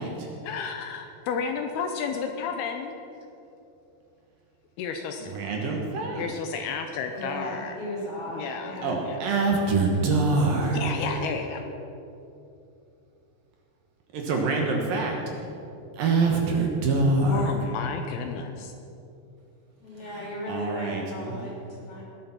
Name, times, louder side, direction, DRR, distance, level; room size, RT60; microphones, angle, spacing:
voice 1, 0.4-3.0 4.8-5.3 6.1-7.8 8.3-9.2 10.7-11.6 17.3-18.7, left 6 dB, 75° left, 5 dB, 2.6 m, -32 dB
voice 2, 5.2-6.4 8.8-10.8 14.1-15.2 15.9-17.5 20.0-21.5, right 3 dB, 65° right, 1 dB, 2.8 m, -25 dB
voice 3, 7.1-9.0 10.7-11.6 19.8-22.0, left 1 dB, 35° left, -4 dB, 4.2 m, -36 dB
19.0 x 8.5 x 5.9 m, 2.7 s
omnidirectional pair, 4.8 m